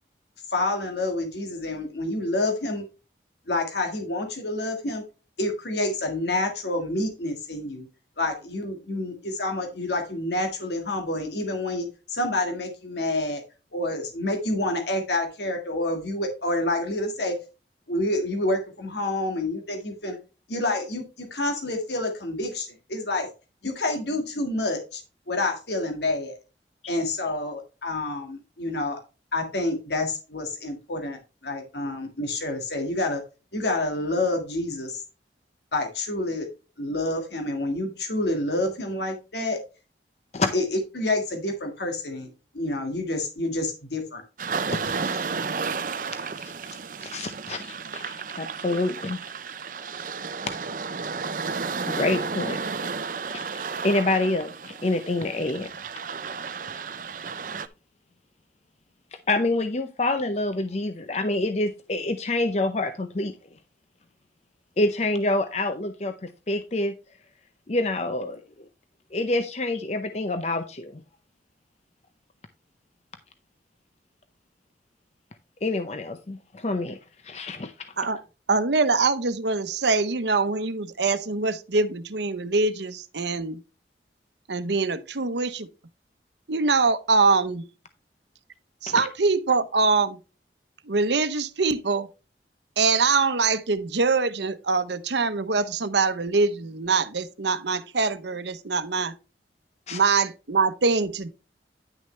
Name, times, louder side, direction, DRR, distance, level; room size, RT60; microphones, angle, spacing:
voice 1, 0.5-2.9 3.5-5.0 5.4-7.9 8.2-13.4 13.7-17.4 17.9-20.2 20.5-23.3 23.6-25.0 25.3-26.3 26.9-29.0 29.3-33.2 33.5-35.0 35.7-36.5 36.8-39.6 40.5-42.3 42.5-44.2, left 2 dB, 75° left, 1.8 m, -28 dB
sound 1, 44.4-57.7, right 5 dB, 50° right, 0.6 m, -32 dB
voice 2, 44.7-45.2 46.4-46.5 47.0-49.2 51.9-52.6 53.8-55.7 59.3-63.4 64.8-66.9 67.7-68.4 69.1-71.0 75.6-77.0 77.2-78.1 88.9-89.1 99.9-100.0, left 2 dB, 35° left, 0.6 m, -27 dB
voice 3, 78.5-83.6 84.5-85.7 86.5-87.6 88.8-90.2 90.9-92.1 92.8-99.1 99.9-101.3, right 4 dB, 75° right, 0.9 m, -23 dB
10.5 x 6.4 x 3.2 m
head